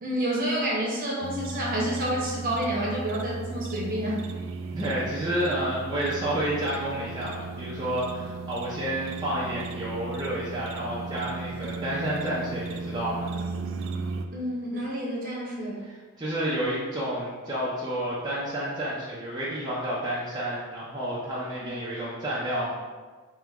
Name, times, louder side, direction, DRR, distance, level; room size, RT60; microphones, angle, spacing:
voice 1, 0.0-4.2 14.3-15.8 21.6-21.7, right 1 dB, 40° right, -4 dB, 0.9 m, -29 dB
sound 1, 1.2-14.3, right 3 dB, 60° right, 0.3 m, -36 dB
voice 2, 4.7-13.3 16.2-22.7, right 1 dB, 20° right, -9 dB, 0.6 m, -30 dB
3.5 x 2.9 x 3.5 m, 1.4 s
head